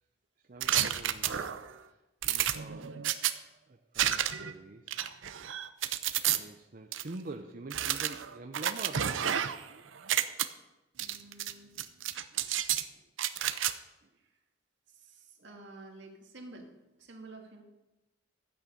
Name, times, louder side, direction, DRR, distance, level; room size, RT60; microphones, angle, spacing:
voice 1, 0.4-5.2 6.3-9.7 10.2-10.4 12.3-12.5 13.0-13.1 14.0-14.1 15.4-15.5, right 2 dB, 45° right, 3 dB, 0.6 m, -47 dB
sound 1, 0.6-1.7 2.2-3.3 4.0-4.5 4.9-6.4 6.9-7.0 7.7-9.7 10.0-10.4 11.0-11.5 11.8-12.8 13.2-13.7, right 11 dB, 90° right, 0.6 m, -30 dB
voice 2, 11.0-11.8 14.2-14.3 14.9-16.7 17.0-17.6, right 2 dB, 65° right, 2 dB, 2.0 m, -50 dB
13.0 x 8.8 x 5.2 m, 1.0 s
head